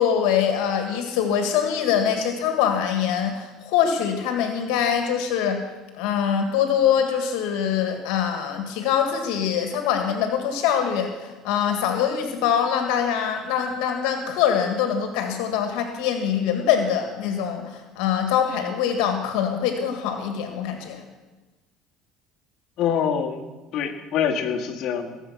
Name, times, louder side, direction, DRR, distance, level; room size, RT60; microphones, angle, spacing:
voice 1, 0.0-5.6 6.0-21.0, left 8 dB, 80° left, 5 dB, 1.8 m, -23 dB
voice 2, 22.8-25.2, left 8 dB, 55° left, -2 dB, 1.8 m, -25 dB
19.5 x 7.2 x 5.8 m, 1.2 s
supercardioid pair, 105°, 0 cm